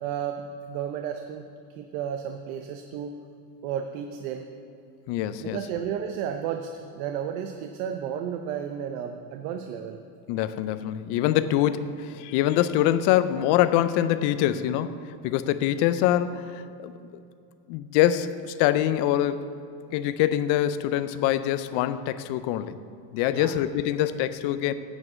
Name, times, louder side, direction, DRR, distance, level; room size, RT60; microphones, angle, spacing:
voice 1, 0.0-1.5 1.8-3.2 3.6-4.5 5.4-10.0 23.3-23.5, right 8 dB, 80° right, 6 dB, 0.8 m, -33 dB
voice 2, 5.1-5.6 10.3-16.9 17.7-19.5 19.9-22.8 23.1-24.7, left 12 dB, 60° left, 13 dB, 0.6 m, -24 dB
9.6 x 5.4 x 7.5 m, 2.5 s
supercardioid pair, 125°, 45 cm